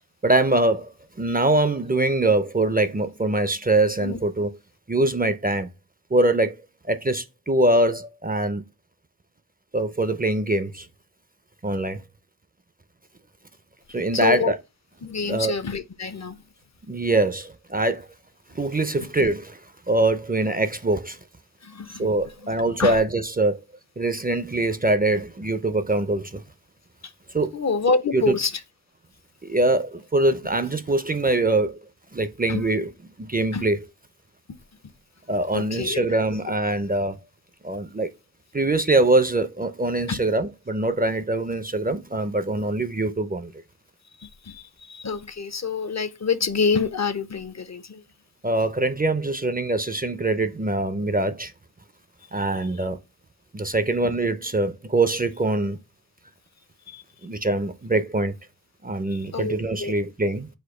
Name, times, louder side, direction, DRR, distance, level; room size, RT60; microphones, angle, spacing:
voice 1, 0.2-0.9 1.2-4.5 4.9-5.7 6.1-6.6 6.9-8.6 9.7-10.9 11.6-12.0 13.9-14.6 15.2-15.6 16.9-18.1 18.5-19.6 19.9-21.2 22.0-23.6 24.0-26.4 27.3-27.5 28.1-28.4 29.4-31.8 32.1-32.9 33.2-33.8 35.3-37.2 37.6-38.1 38.5-43.5 48.4-51.5 52.3-53.0 53.5-55.8 57.2-58.4 58.8-60.5, right 2 dB, 25° right, 0.4 m, -23 dB
voice 2, 14.2-14.5 15.0-16.4 21.6-22.1 22.8-23.0 27.5-28.5 32.5-32.6 33.5-33.6 35.5-36.0 40.1-40.2 44.5-48.0 56.9-57.0 59.3-59.5 59.8-59.9, left 5 dB, 45° left, 0.5 m, -26 dB
4.2 x 2.5 x 4.7 m
wide cardioid pair, 50°, 37 cm